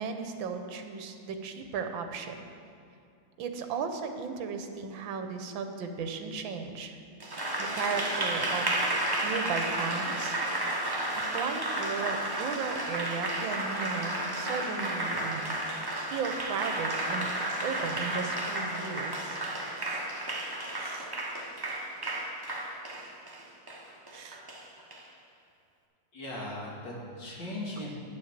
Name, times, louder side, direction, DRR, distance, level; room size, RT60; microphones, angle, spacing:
voice 1, 0.0-2.4 3.4-7.0 7.6-8.8 9.2-10.4 10.8-15.6 16.1-17.4 17.6-19.4 19.8-20.1 20.8-21.1 24.1-24.4, right 5 dB, 75° right, 6 dB, 1.5 m, -36 dB
Applause, 7.2-25.0, right 1 dB, 35° right, 0.3 m, -32 dB
voice 2, 26.1-28.0, left 1 dB, 60° left, -5 dB, 2.6 m, -38 dB
9.7 x 6.6 x 7.3 m, 2.5 s
omnidirectional pair, 2.2 m